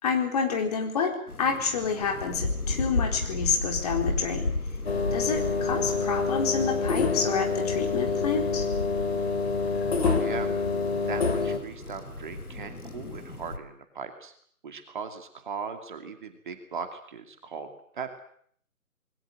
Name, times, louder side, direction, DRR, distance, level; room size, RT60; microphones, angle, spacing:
voice 1, 0.0-4.5 5.1-8.7, left 5 dB, 25° left, 3 dB, 4.1 m, -28 dB
sound 1, 1.3-13.6, left 2 dB, 80° left, 3.5 m, -35 dB
sound 2, 4.9-11.6, left 4 dB, 45° left, 2.5 m, -27 dB
voice 2, 10.0-10.5 11.1-14.3 14.6-18.2, right 5 dB, 35° right, 6 dB, 2.6 m, -38 dB
28.0 x 21.0 x 7.7 m, 0.62 s
figure-of-eight pair, 150°, 44 cm